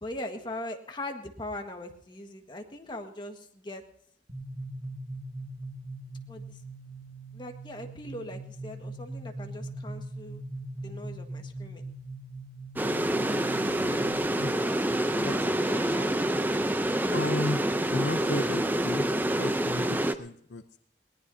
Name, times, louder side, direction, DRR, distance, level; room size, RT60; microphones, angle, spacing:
voice 1, 0.0-3.8 6.3-6.6 7.3-10.4 10.8-11.8 14.5-16.1, left 1 dB, 25° left, 4 dB, 1.6 m, -40 dB
sound 1, 4.3-14.1, right 2 dB, 50° right, 2.2 m, -41 dB
sound 2, 12.8-20.1, right 1 dB, 10° right, 0.6 m, -27 dB
voice 2, 17.1-17.6 17.9-20.8, left 2 dB, 65° left, 9 dB, 0.7 m, -33 dB
21.0 x 19.0 x 2.8 m, 0.67 s
head